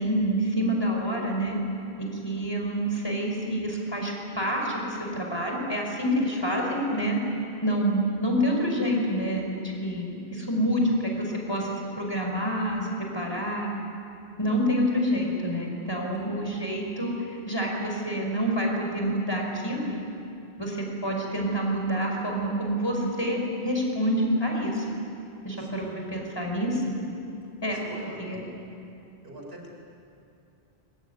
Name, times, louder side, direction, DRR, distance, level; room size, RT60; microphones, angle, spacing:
voice 1, 0.0-1.6 2.2-7.2 7.6-9.5 9.8-13.7 14.4-19.9 20.6-20.8 21.0-24.9 25.4-26.8 27.6-28.5, equal, 25° left, 0 dB, 5.3 m, -27 dB
voice 2, 25.6-25.9 27.7-28.5 29.2-29.7, right 1 dB, 75° right, -1 dB, 5.1 m, -44 dB
22.5 x 22.5 x 9.7 m, 2.8 s
omnidirectional pair, 1.0 m